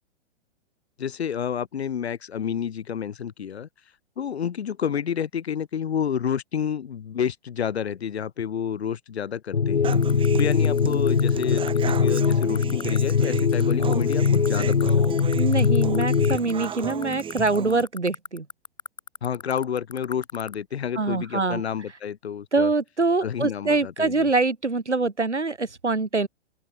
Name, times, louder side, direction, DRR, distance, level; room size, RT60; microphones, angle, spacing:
voice 1, 1.0-3.7 4.2-10.0 10.4-15.3 19.2-22.7 23.2-24.3, left 8 dB, 65° left, 7.1 m, -29 dB
sound 1, 9.5-16.4, left 6 dB, 85° left, 1.1 m, -21 dB
Human voice / Acoustic guitar, 9.8-17.8, right 7 dB, 15° right, 2.0 m, -35 dB
sound 2, 9.9-20.5, left 6 dB, 15° left, 2.6 m, -36 dB
voice 2, 15.4-18.5 21.0-21.6 22.5-26.3, right 3 dB, 90° right, 4.8 m, -24 dB
open air
figure-of-eight pair, 110°, 34 cm